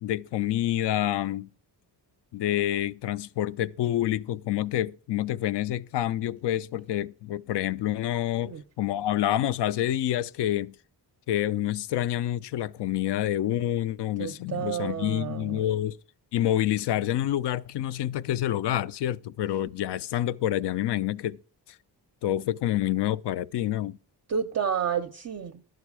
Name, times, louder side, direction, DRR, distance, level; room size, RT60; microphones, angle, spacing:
voice 1, 0.0-1.5 2.3-10.7 11.3-16.0 16.3-21.4 22.2-24.0, left 12 dB, 80° left, 0.5 m, -28 dB
voice 2, 14.2-15.6 24.3-25.7, right 8 dB, 40° right, 0.5 m, -30 dB
11.5 x 7.7 x 4.7 m
wide cardioid pair, 170°, 41 cm